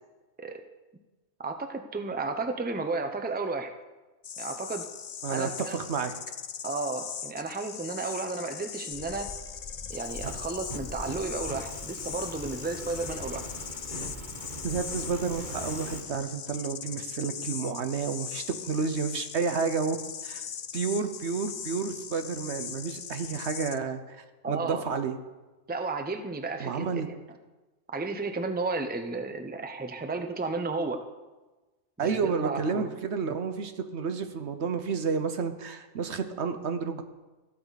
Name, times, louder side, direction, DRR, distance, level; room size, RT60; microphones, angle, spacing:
voice 1, 1.4-3.7 4.4-4.9 5.3-5.8 6.6-9.3 9.9-13.5 24.4-24.8 25.7-26.9 27.9-31.0 32.0-32.9 33.2-33.3, right 3 dB, 10° right, 7 dB, 0.7 m, -33 dB
sound 1, 4.2-23.8, left 8 dB, 65° left, 0.3 m, -40 dB
voice 2, 5.2-6.1 14.6-20.0 20.2-20.4 20.7-25.2 26.6-27.1 32.0-37.0, right 5 dB, 70° right, 8 dB, 1.2 m, -30 dB
sound 2, 8.9-15.6, left 2 dB, 40° left, 1.2 m, -45 dB
Fire, 9.9-16.0, right 3 dB, 45° right, 1.2 m, -43 dB
14.5 x 13.0 x 4.1 m, 1.2 s
omnidirectional pair, 1.2 m